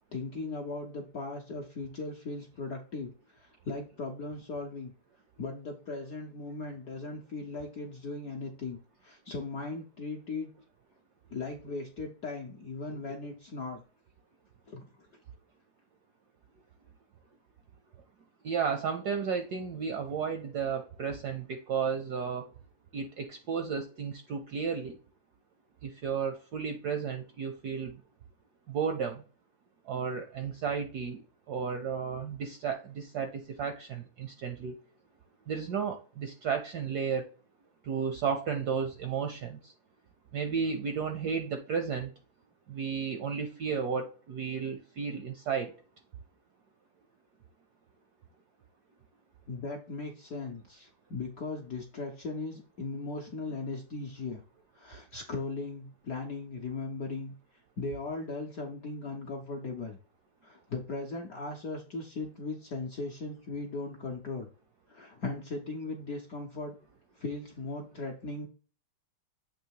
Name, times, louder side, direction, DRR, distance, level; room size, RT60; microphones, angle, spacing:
voice 1, 0.1-4.9 5.4-10.5 11.3-13.8 14.7-14.9 49.5-54.4 54.8-57.3 57.8-60.0 60.4-64.5 64.9-66.7 67.2-68.5, left 3 dB, 70° left, 1 dB, 0.8 m, -38 dB
voice 2, 18.4-22.5 22.9-25.0 25.8-27.9 28.7-29.2 29.9-31.2 31.5-34.7 35.5-37.3 37.8-39.7 40.3-42.1 42.7-45.7, right 6 dB, 75° right, 6 dB, 0.9 m, -33 dB
7.6 x 2.9 x 4.6 m, 0.38 s
omnidirectional pair, 2.4 m